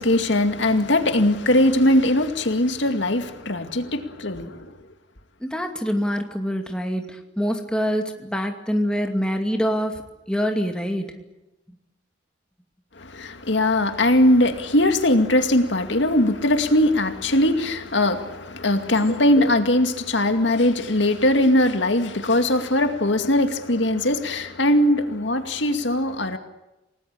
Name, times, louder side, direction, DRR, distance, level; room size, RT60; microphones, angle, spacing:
voice 1, 0.0-4.6 13.0-26.4, left 1 dB, 70° left, 7 dB, 2.3 m, -20 dB
voice 2, 5.4-10.0 10.3-11.1, equal, 5° left, 3 dB, 2.5 m, -25 dB
29.0 x 19.5 x 8.6 m, 0.98 s
head